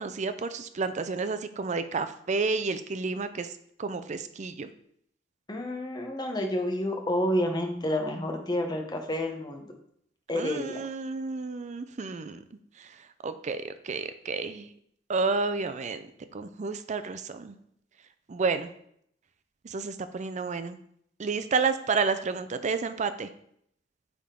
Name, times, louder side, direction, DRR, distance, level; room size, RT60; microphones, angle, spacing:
voice 1, 0.0-3.5 3.8-4.7 10.3-12.4 12.8-12.9 13.2-14.7 15.1-17.6 18.3-18.7 19.6-20.8 21.2-23.3, right 4 dB, 40° right, 11 dB, 0.4 m, -30 dB
voice 2, 5.5-9.7 10.3-10.8, left 1 dB, 20° left, 3 dB, 0.8 m, -29 dB
8.6 x 3.6 x 3.8 m, 0.70 s
head